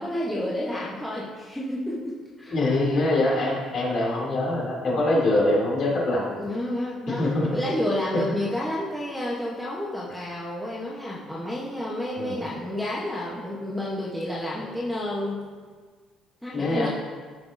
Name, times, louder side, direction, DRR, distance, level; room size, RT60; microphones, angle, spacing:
voice 1, 0.0-2.5 6.4-7.2 7.5-15.4 16.4-16.9, left 1 dB, ahead, -7 dB, 0.9 m, -30 dB
voice 2, 2.5-6.3 7.1-7.5 12.2-12.4 16.5-16.9, left 2 dB, 40° left, -5 dB, 2.5 m, -24 dB
15.0 x 6.0 x 2.6 m, 1.5 s
cardioid pair, 175°, 0 cm